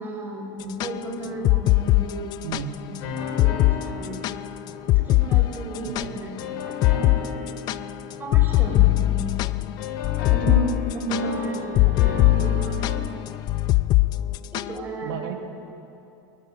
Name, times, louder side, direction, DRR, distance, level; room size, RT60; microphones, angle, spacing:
voice 1, 0.0-2.3 2.6-4.2 4.9-7.4 8.2-9.3 10.2-12.9 14.5-15.2, right 2 dB, 20° right, -1 dB, 6.4 m, -33 dB
sound 1, 0.6-2.6 2.9-3.0 3.4-3.8 4.0-6.4 6.8-7.2 7.5-14.8, left 19 dB, 40° left, 0.5 m, -21 dB
voice 2, 2.4-2.8 5.8-6.2 10.4-10.5 15.0-15.3, right 11 dB, 75° right, 1 dB, 3.5 m, -33 dB
sound 2, 3.0-5.7 6.4-9.4 9.8-13.0, left 4 dB, 70° left, 4.2 m, -34 dB
23.0 x 22.0 x 9.8 m, 2.7 s
supercardioid pair, 155°, 11 cm